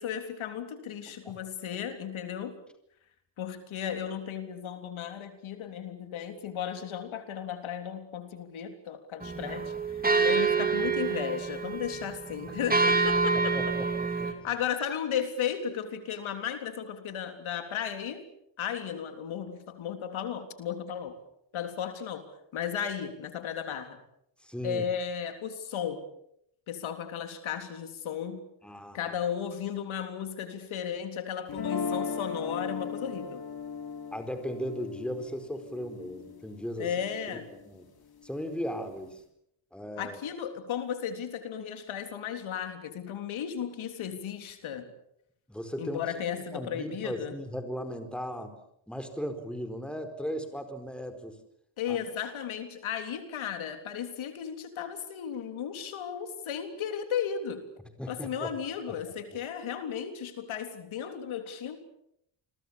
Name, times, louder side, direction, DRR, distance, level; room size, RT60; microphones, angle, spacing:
voice 1, 0.0-2.5 3.4-13.6 14.2-18.2 18.6-21.2 21.5-22.2 22.5-24.0 24.6-26.0 26.7-28.4 28.9-33.4 36.8-37.5 40.0-44.9 45.8-47.3 51.8-57.6 58.1-61.8, left 8 dB, 75° left, 7 dB, 3.6 m, -35 dB
sound 1, 9.2-14.3, right 4 dB, 20° right, 3.6 m, -27 dB
voice 2, 13.3-13.9 14.2-14.5 24.4-24.8 28.6-29.2 34.1-36.9 37.5-37.9 38.2-39.2 39.7-40.2 45.5-46.0 46.5-48.5 48.9-51.4 51.9-52.0 58.0-58.5 59.0-59.1, equal, ahead, 7 dB, 4.5 m, -37 dB
sound 2, 31.5-37.6, left 5 dB, 50° left, 3.8 m, -37 dB
29.0 x 23.0 x 7.1 m, 0.75 s
cardioid pair, 100°, 49 cm